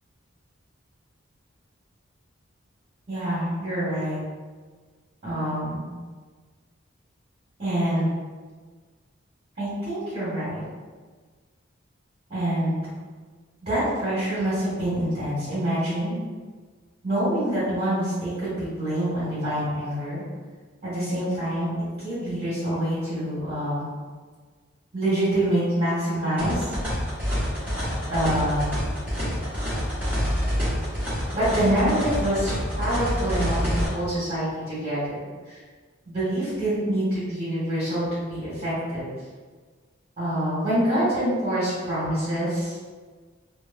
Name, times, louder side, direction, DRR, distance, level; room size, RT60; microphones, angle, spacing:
voice 1, 3.1-4.2 5.2-5.9 7.6-8.1 9.6-10.6 12.3-12.8 13.6-16.2 17.0-20.2 20.8-21.7 22.0-23.9 24.9-26.7 28.1-28.7 31.3-35.0 35.5-35.6 36.1-39.0 40.2-42.8, right 1 dB, 30° right, -12 dB, 1.2 m, -26 dB
sound 1, 26.4-33.9, equal, 5° right, 1.1 m, -27 dB
3.0 x 2.2 x 2.5 m, 1.5 s
head